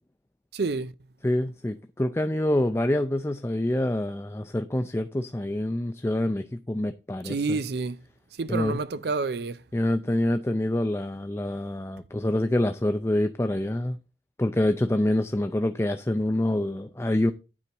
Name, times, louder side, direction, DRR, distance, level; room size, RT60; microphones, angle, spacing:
voice 1, 0.5-0.9 7.2-8.0 8.4-9.6, right 4 dB, 65° right, 0.5 m, -28 dB
voice 2, 1.2-7.6 8.5-8.8 9.7-14.0 14.4-17.3, left 1 dB, 15° left, 0.4 m, -26 dB
9.8 x 4.5 x 7.0 m
head